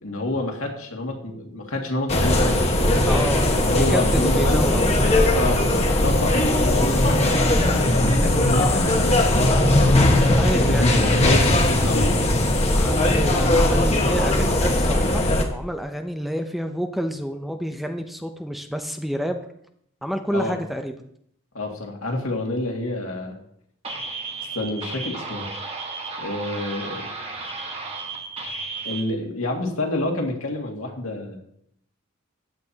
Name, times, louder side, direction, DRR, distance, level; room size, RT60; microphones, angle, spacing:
voice 1, 0.0-2.7 3.5-4.8 5.2-9.9 10.2-12.2 20.3-20.6 21.5-23.4 24.5-25.5 26.2-27.1 28.8-31.4, left 2 dB, 80° left, 0 dB, 2.2 m, -28 dB
sound 1, 2.1-15.4, left 1 dB, 30° left, 1.4 m, -19 dB
voice 2, 3.1-4.8 10.4-11.0 12.7-19.4 20.0-21.0, equal, ahead, 6 dB, 0.5 m, -29 dB
sound 2, 23.8-29.0, right 3 dB, 30° right, 1.4 m, -33 dB
14.5 x 9.1 x 2.8 m, 0.71 s
head